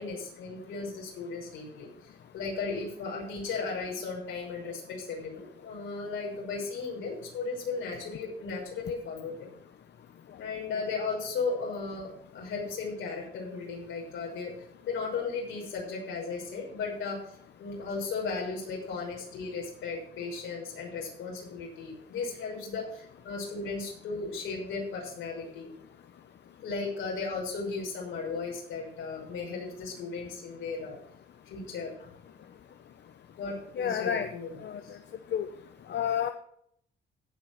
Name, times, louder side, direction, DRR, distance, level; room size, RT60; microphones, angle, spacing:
voice 1, 0.0-1.9 2.3-9.5 10.4-25.7 26.6-31.0 31.5-32.1 33.4-34.6 34.8-35.0, left 4 dB, 80° left, -1 dB, 6.1 m, -36 dB
voice 2, 33.8-34.3 34.6-34.8 35.3-35.5 35.9-36.3, left 9 dB, 60° left, 8 dB, 0.9 m, -29 dB
16.5 x 5.6 x 6.1 m, 0.67 s
cardioid pair, 90°, 20 cm